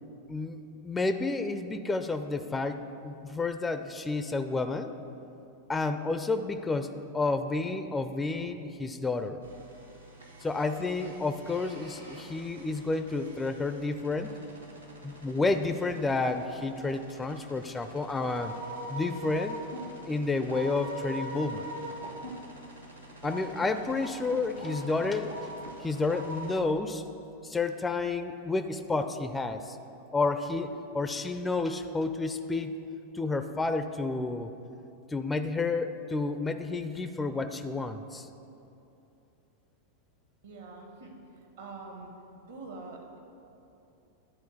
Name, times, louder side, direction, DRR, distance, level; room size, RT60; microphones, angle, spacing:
voice 1, 0.3-4.9 5.7-9.4 10.4-14.3 15.0-18.5 18.9-19.6 20.1-21.7 23.2-25.3 25.8-27.0 27.4-29.8 30.1-32.7 33.1-34.5 35.1-38.3, left 3 dB, 10° left, 9 dB, 0.4 m, -30 dB
sound 1, 9.4-26.6, right 1 dB, 80° right, 1.2 m, -43 dB
voice 2, 40.4-41.1 41.6-42.1 42.5-43.2, right 3 dB, 65° right, 1 dB, 1.5 m, -44 dB
10.5 x 4.4 x 6.9 m, 2.8 s
figure-of-eight pair, 90°, 0 cm